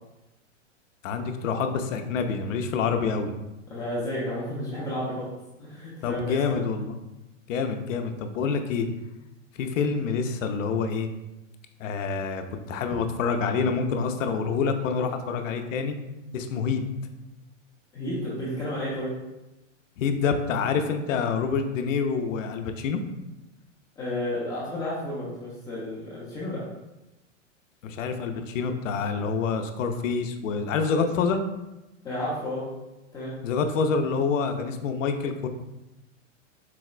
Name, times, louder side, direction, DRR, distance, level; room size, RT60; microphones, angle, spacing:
voice 1, 1.0-3.3 6.0-6.9 7.5-8.9 9.6-11.1 11.8-16.0 16.3-16.8 20.0-23.0 27.8-31.4 33.4-35.5, left 5 dB, 80° left, 7 dB, 0.5 m, -27 dB
voice 2, 3.7-5.3 5.6-6.6 17.9-19.1 24.0-26.7 32.0-32.7 33.1-33.3, left 1 dB, 10° left, -8 dB, 0.3 m, -32 dB
4.0 x 2.1 x 2.4 m, 0.99 s
hypercardioid pair, 135°, 38 cm